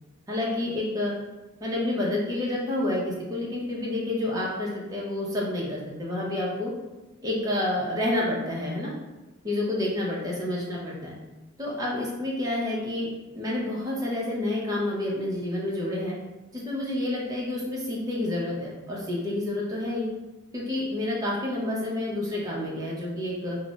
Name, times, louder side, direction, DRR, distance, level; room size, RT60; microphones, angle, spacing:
voice 1, 0.3-1.1 1.6-6.7 7.2-8.9 9.4-11.1 11.6-13.1 13.3-16.1 16.5-20.1 20.5-23.6, left 1 dB, 15° right, -4 dB, 0.5 m, -29 dB
2.3 x 2.0 x 3.8 m, 1.1 s
head